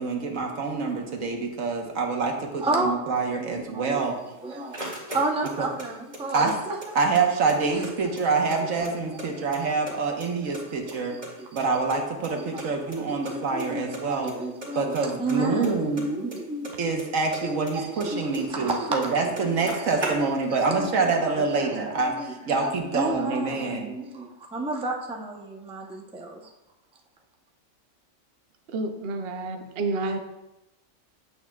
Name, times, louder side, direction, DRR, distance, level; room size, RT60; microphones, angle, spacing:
voice 1, 0.0-4.2 5.6-5.7 6.3-6.5 6.9-11.2 11.5-14.3 14.7-16.1 16.8-23.9, right 4 dB, 75° right, 2 dB, 1.4 m, -26 dB
voice 2, 2.6-3.0 3.4-4.0 4.4-4.8 5.1-6.8 7.7-7.8 9.3-9.4 10.1-10.2 11.1-11.7 12.3-16.7 17.4-19.7 20.0-22.3 22.6-26.5, right 2 dB, 5° right, 0 dB, 0.5 m, -32 dB
sound 1, 4.1-5.9 6.1-7.2 7.5-7.6 7.8-9.3 9.5-10.3 10.5-12.0 12.2-12.3 12.6-12.7 12.9-13.0 13.2-13.7 13.9-14.3 14.6-17.0 17.3-18.8 19.0-19.1 19.3-20.6, right 1 dB, 35° right, 2.0 m, -37 dB
voice 3, 28.7-30.2, right 3 dB, 55° right, 5 dB, 0.8 m, -29 dB
8.5 x 7.8 x 2.3 m, 0.96 s
omnidirectional pair, 1.4 m